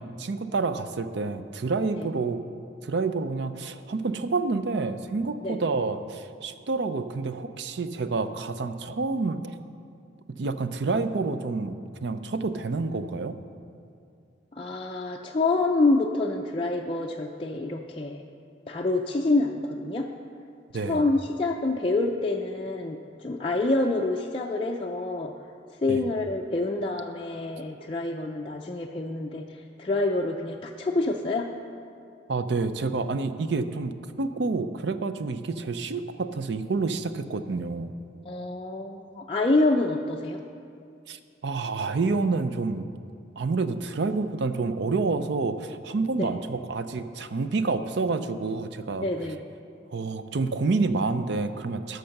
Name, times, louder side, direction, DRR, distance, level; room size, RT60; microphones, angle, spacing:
voice 1, 0.0-2.4 2.8-9.4 10.4-13.4 20.7-21.1 25.9-26.0 32.3-37.9 41.1-42.9 43.4-49.1 49.9-52.0, right 3 dB, 60° right, 11 dB, 0.5 m, -28 dB
voice 2, 14.5-18.2 18.7-20.1 20.7-25.3 25.8-31.5 38.3-40.4 46.2-46.4 49.0-49.4, left 2 dB, 25° left, 0 dB, 0.4 m, -27 dB
11.5 x 6.5 x 5.8 m, 2.4 s
head